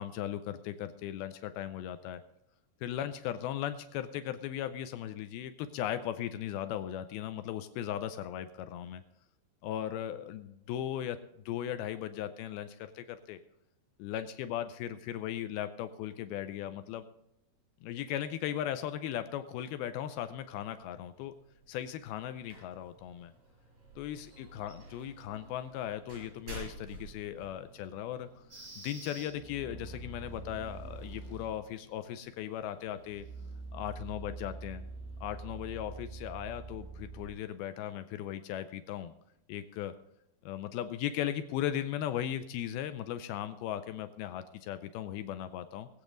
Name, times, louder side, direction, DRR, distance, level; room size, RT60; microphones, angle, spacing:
voice 1, 0.0-2.2 2.8-9.0 9.6-11.2 11.5-13.4 14.0-17.1 17.8-21.3 21.7-23.3 24.0-28.4 28.8-33.3 33.7-34.8 35.2-39.1 39.5-39.9 40.4-45.9, left 11 dB, 85° left, 11 dB, 2.6 m, -37 dB
sound 1, 20.2-36.0, right 2 dB, 70° right, 7.5 m, -54 dB
sound 2, 28.5-31.6 33.0-37.3, right 3 dB, 20° right, 5.5 m, -45 dB
21.5 x 8.4 x 3.9 m, 0.81 s
omnidirectional pair, 4.4 m